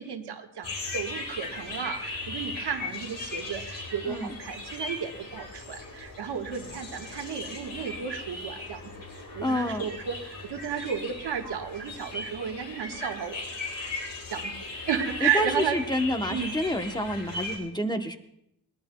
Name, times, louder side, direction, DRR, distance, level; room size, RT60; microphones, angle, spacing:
voice 1, 0.0-8.8 9.3-13.4 14.3-14.5 14.9-15.8 16.3-16.5, right 8 dB, 85° right, 4 dB, 1.4 m, -33 dB
sound 1, 0.6-17.6, left 2 dB, 60° left, 3.6 m, -38 dB
voice 2, 9.4-9.8 15.2-18.2, left 1 dB, 10° left, 6 dB, 0.8 m, -28 dB
21.5 x 18.5 x 2.2 m, 0.78 s
wide cardioid pair, 130°, 39 cm